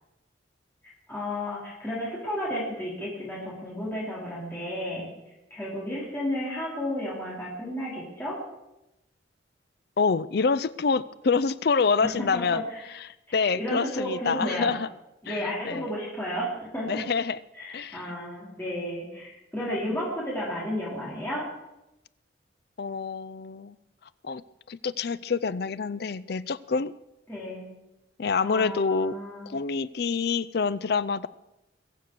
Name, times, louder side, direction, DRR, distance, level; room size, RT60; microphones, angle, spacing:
voice 1, 1.1-5.1 5.5-8.4 12.0-12.8 13.3-14.8 15.2-17.0 17.5-21.5 27.3-27.7 28.4-29.5, equal, 10° left, -7 dB, 4.8 m, -32 dB
voice 2, 10.0-12.6 13.0-14.9 15.3-15.9 16.9-17.4 17.7-18.0 22.8-23.7 24.2-24.4 24.7-26.9 28.2-29.1 29.5-31.3, left 5 dB, 55° left, 18 dB, 0.4 m, -27 dB
22.5 x 7.8 x 6.7 m, 0.93 s
head